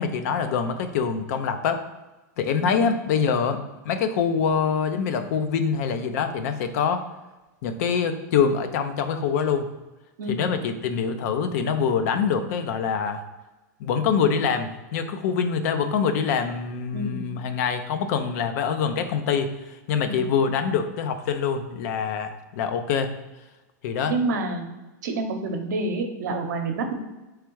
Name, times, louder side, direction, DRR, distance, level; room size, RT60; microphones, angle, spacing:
voice 1, 0.0-1.8 2.4-3.6 3.8-7.0 7.6-9.7 10.3-13.2 13.8-19.5 19.9-23.1 23.8-24.1, left 6 dB, 65° left, 8 dB, 0.5 m, -25 dB
voice 2, 16.9-17.3 20.0-20.3 24.1-24.6 25.0-26.9, right 2 dB, 80° right, 4 dB, 0.7 m, -28 dB
3.5 x 3.2 x 4.6 m, 1.1 s
supercardioid pair, 130°, 10 cm